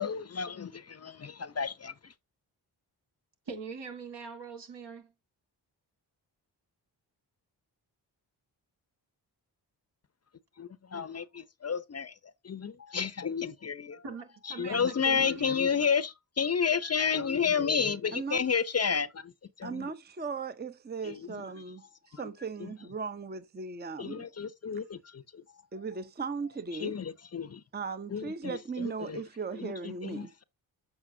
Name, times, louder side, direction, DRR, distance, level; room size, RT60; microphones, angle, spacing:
voice 1, 0.0-1.9 10.6-12.1 12.4-14.0 14.6-19.3 19.6-19.9 21.0-21.3 22.6-22.7 24.0-25.4 26.8-27.6 28.1-29.2 29.6-30.4, left 6 dB, 35° left, 0.7 m, -31 dB
voice 2, 3.5-5.1 14.0-15.7, right 5 dB, 65° right, 2.1 m, -42 dB
voice 3, 18.1-18.4 19.6-24.3 25.7-27.0 27.7-30.3, right 4 dB, 20° right, 0.7 m, -37 dB
7.8 x 5.8 x 2.7 m
supercardioid pair, 45°, 45 cm